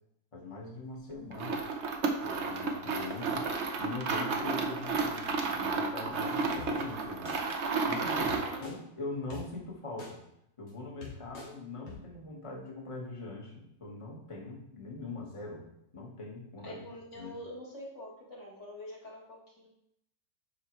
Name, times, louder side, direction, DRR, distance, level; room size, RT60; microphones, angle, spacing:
voice 1, 0.3-1.6 2.2-3.5 3.8-7.3 7.8-8.3 8.6-10.2 10.6-15.6 15.9-16.8 17.1-17.3, left 3 dB, 15° left, -3 dB, 1.3 m, -42 dB
sound 1, 1.3-8.6, right 4 dB, 80° right, 0.6 m, -32 dB
sound 2, 6.6-6.7 7.3-7.4 8.3-8.7 9.3-9.4 10.0-10.1 10.7-10.8 11.0-11.5 11.9-12.0, left 5 dB, 85° left, 2.5 m, -44 dB
voice 2, 8.1-8.7 16.6-19.7, left 1 dB, 35° left, -4 dB, 1.7 m, -46 dB
9.8 x 4.8 x 3.2 m, 0.78 s
omnidirectional pair, 2.3 m